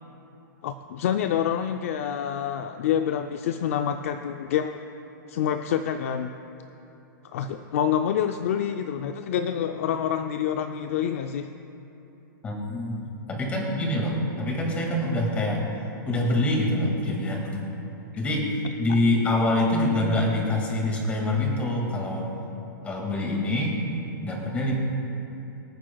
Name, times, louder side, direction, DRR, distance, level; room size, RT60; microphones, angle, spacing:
voice 1, 0.6-4.8 5.3-6.3 7.3-11.5, left 9 dB, 40° left, 7 dB, 0.4 m, -27 dB
voice 2, 12.4-13.0 13.3-15.6 16.1-17.6 18.2-18.4 18.8-22.3 22.8-23.8 24.2-24.7, left 1 dB, 10° left, -1 dB, 2.0 m, -25 dB
25.5 x 9.3 x 2.3 m, 3.0 s
hypercardioid pair, 170°, 11 cm